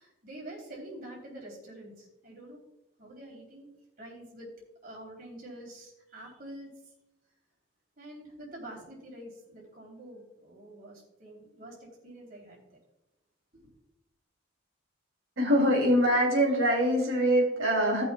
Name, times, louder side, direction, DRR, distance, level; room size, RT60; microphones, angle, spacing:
voice 1, 0.0-2.6 3.0-3.7 4.0-4.5 4.8-6.9 8.0-12.8 13.5-13.7, right 1 dB, 45° right, -2 dB, 3.2 m, -46 dB
voice 2, 15.4-18.0, equal, 85° right, -3 dB, 2.8 m, -24 dB
18.0 x 6.2 x 2.3 m, 0.92 s
head